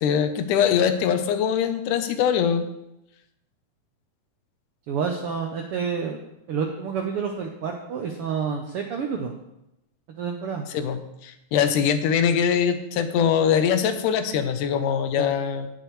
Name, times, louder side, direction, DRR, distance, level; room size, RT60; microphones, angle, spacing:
voice 1, 0.0-2.7 10.7-15.7, left 8 dB, 85° left, 9 dB, 2.3 m, -22 dB
voice 2, 4.9-6.2 6.5-9.3 10.2-10.7 15.1-15.3, right 6 dB, 80° right, 3 dB, 1.3 m, -29 dB
17.5 x 6.8 x 3.1 m, 0.87 s
omnidirectional pair, 3.6 m